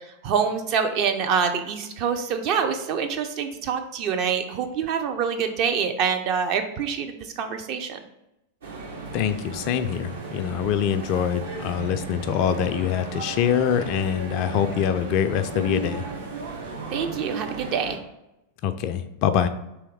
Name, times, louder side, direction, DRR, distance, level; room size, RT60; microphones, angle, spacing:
voice 1, 0.2-8.0 16.9-18.0, right 6 dB, 40° right, 6 dB, 0.5 m, -26 dB
sound 1, 8.6-18.0, right 4 dB, 65° right, 0.9 m, -35 dB
voice 2, 9.1-16.1 18.6-19.5, left 9 dB, 45° left, 10 dB, 0.3 m, -24 dB
3.4 x 3.1 x 4.6 m, 0.90 s
figure-of-eight pair, 90°, 0 cm